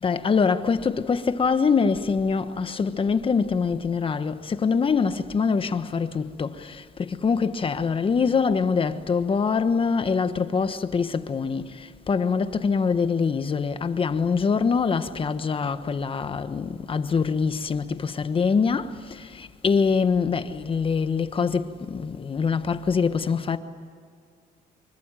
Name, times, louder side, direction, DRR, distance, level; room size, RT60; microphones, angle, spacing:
voice 1, 0.0-23.6, left 5 dB, 30° left, 1.3 m, -24 dB
26.0 x 24.0 x 9.1 m
cardioid pair, 110°, 17 cm